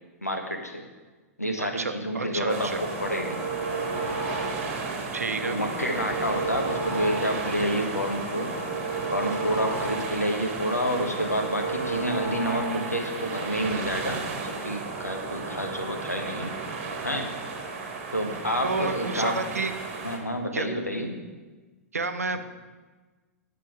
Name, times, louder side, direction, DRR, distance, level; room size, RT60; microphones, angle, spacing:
voice 1, 0.2-0.8 1.4-3.4 5.4-8.5 9.1-16.5 17.0-17.3 18.1-19.5 20.0-21.2, equal, 90° left, 3 dB, 1.2 m, -29 dB
voice 2, 1.6-2.8 5.1-5.6 18.6-19.7 20.5-20.7 21.9-22.4, right 4 dB, 75° right, 9 dB, 0.7 m, -30 dB
sound 1, 2.5-4.9 5.2-7.6 7.9-10.3 10.6-13.0, right 3 dB, 60° left, 3.2 m, -33 dB
sound 2, 2.5-20.2, right 4 dB, 45° right, 1.6 m, -35 dB
9.9 x 5.8 x 4.9 m, 1.3 s
figure-of-eight pair, 105°, 8 cm